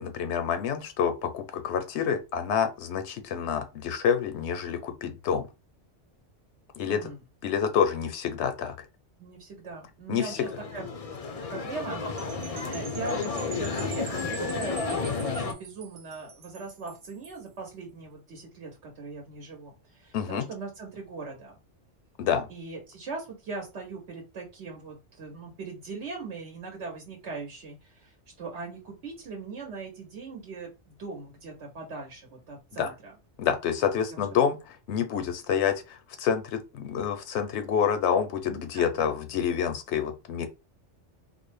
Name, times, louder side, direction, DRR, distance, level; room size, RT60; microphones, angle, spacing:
voice 1, 0.0-5.5 6.8-7.0 7.4-8.7 10.1-10.4 20.1-20.5 22.2-22.5 32.8-32.9 33.4-34.5 34.9-40.5, left 7 dB, 75° left, 0.8 m, -27 dB
voice 2, 6.9-7.2 9.2-10.8 11.5-21.6 22.5-33.1 34.1-34.3 38.5-39.0, right 4 dB, 75° right, 1.1 m, -40 dB
sound 1, 10.3-15.5, left 4 dB, 50° left, 0.4 m, -32 dB
sound 2, 12.2-17.5, right 6 dB, 55° right, 0.6 m, -45 dB
3.9 x 2.1 x 3.2 m
omnidirectional pair, 1.2 m